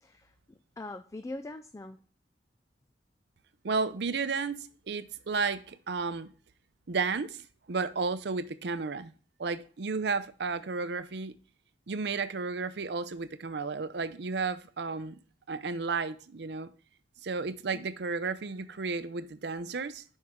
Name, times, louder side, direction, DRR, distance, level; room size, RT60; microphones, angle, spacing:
voice 1, 0.0-2.0 17.7-17.8, left 2 dB, 15° left, 0.3 m, -42 dB
voice 2, 3.6-6.3 6.9-9.1 9.4-11.3 11.9-15.2 15.5-16.7 17.2-20.0, right 4 dB, 65° right, 0.6 m, -33 dB
7.6 x 5.5 x 3.6 m
head